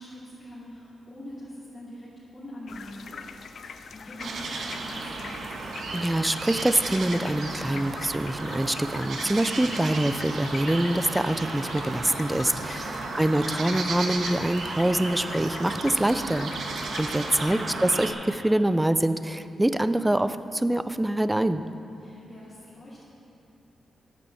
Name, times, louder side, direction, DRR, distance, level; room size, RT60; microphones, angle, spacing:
voice 1, 0.0-3.3 3.5-5.3 12.6-13.0 17.1-17.5 22.0-23.0, left 1 dB, 25° left, -10 dB, 2.4 m, -44 dB
sound 1, 2.7-17.6, left 5 dB, 55° left, 0.5 m, -43 dB
sound 2, 4.2-18.1, right 3 dB, 60° right, 1.2 m, -34 dB
voice 2, 5.9-16.5 17.0-21.6, right 1 dB, 10° right, 12 dB, 0.4 m, -25 dB
sound 3, 10.0-17.6, right 2 dB, 40° right, 1.3 m, -53 dB
10.5 x 9.4 x 7.0 m, 2.7 s
wide cardioid pair, 160°, 0 cm